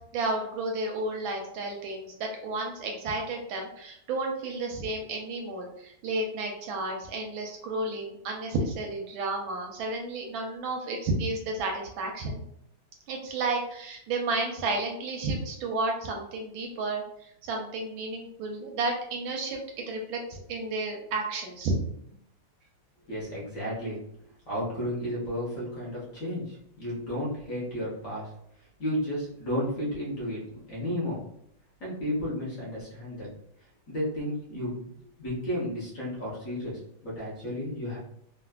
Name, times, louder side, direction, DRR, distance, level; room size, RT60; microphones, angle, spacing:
voice 1, 0.0-12.4 13.1-21.8, right 2 dB, 75° right, 1 dB, 1.2 m, -32 dB
voice 2, 23.1-24.0 24.5-28.3 28.8-30.4 30.7-31.2 31.8-33.3 33.9-34.9 35.2-38.0, equal, 55° left, -6 dB, 0.9 m, -32 dB
3.3 x 2.4 x 2.2 m, 0.73 s
omnidirectional pair, 2.4 m